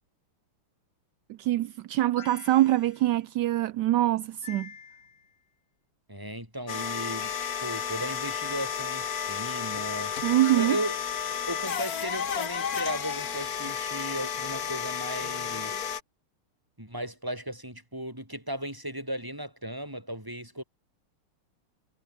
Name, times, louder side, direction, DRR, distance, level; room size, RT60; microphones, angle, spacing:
voice 1, 1.4-4.7 10.2-10.8, right 15 dB, 70° right, 1.0 m, -24 dB
sound 1, 2.2-3.1 4.4-5.4 7.2-8.1 10.4-11.0, left 7 dB, 70° left, 3.0 m, -48 dB
voice 2, 6.1-10.1 10.6-11.0 11.5-15.9 16.8-20.6, right 1 dB, 10° right, 7.0 m, -36 dB
sound 2, 6.7-16.0, left 7 dB, 45° left, 1.6 m, -32 dB
omnidirectional pair, 2.4 m